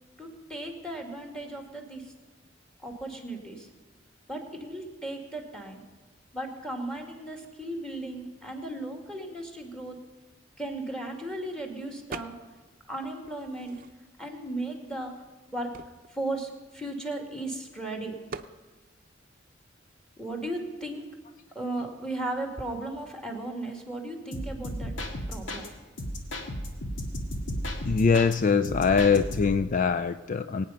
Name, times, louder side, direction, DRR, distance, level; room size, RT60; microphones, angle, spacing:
voice 1, 0.2-2.1 2.8-3.7 4.3-5.8 6.3-10.0 10.6-12.3 12.9-13.7 14.2-15.2 15.5-15.7 16.1-18.1 20.2-21.1 21.5-24.9 25.3-25.6, right 1 dB, 5° left, 3 dB, 2.0 m, -36 dB
sound 1, 12.1-12.7 13.0-14.3 14.9-15.0 15.2-17.5 18.3-18.6, right 4 dB, 50° right, 0.7 m, -43 dB
sound 2, 24.3-25.7 26.0-28.3 28.6-29.6, equal, 80° left, 1.9 m, -34 dB
voice 2, 27.8-30.6, left 5 dB, 40° left, 10 dB, 0.4 m, -23 dB
23.0 x 9.2 x 5.7 m, 1.3 s
head